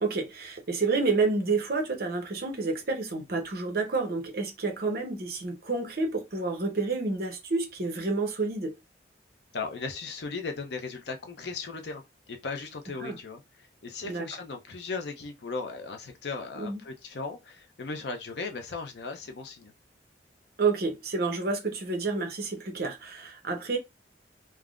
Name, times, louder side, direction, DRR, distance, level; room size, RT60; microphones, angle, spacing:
voice 1, 0.0-8.7 13.0-13.2 14.0-14.2 16.6-16.8 20.6-23.8, right 3 dB, 55° right, 0.8 m, -29 dB
voice 2, 9.5-12.0 12.3-13.4 13.8-19.7, left 4 dB, 65° left, 0.5 m, -37 dB
3.5 x 2.0 x 2.4 m
head